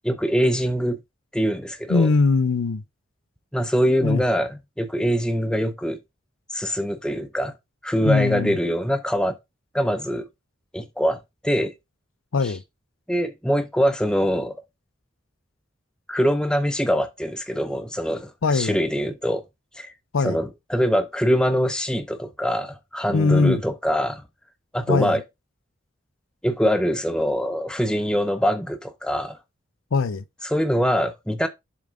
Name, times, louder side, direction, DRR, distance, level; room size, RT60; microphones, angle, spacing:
voice 1, 0.0-1.0 1.3-2.1 3.5-6.0 6.5-7.5 7.8-9.3 9.7-10.3 10.7-11.7 12.4-12.5 13.1-14.5 16.1-19.4 19.8-19.9 20.2-24.2 24.7-25.2 26.4-29.4 30.4-31.5, equal, 5° left, 0.7 m, -23 dB
voice 2, 1.9-2.8 4.0-4.2 8.0-8.5 12.3-12.6 18.4-18.8 20.1-20.4 23.1-23.6 24.9-25.2 29.9-30.2, left 4 dB, 90° left, 0.6 m, -21 dB
7.1 x 3.6 x 4.7 m
head